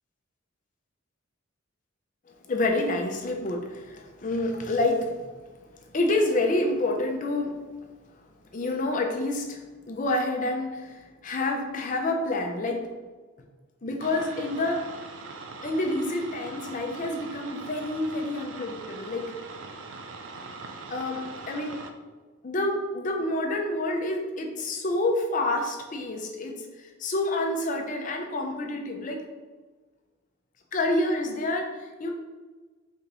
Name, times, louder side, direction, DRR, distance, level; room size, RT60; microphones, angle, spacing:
voice 1, 2.4-7.5 8.5-12.8 13.8-14.9 15.6-19.2 20.9-21.8 22.4-29.2 30.7-32.1, left 2 dB, 40° left, 2 dB, 0.5 m, -28 dB
sound 1, 14.0-21.9, right 3 dB, 65° right, 0.4 m, -42 dB
3.8 x 3.4 x 2.9 m, 1.3 s
head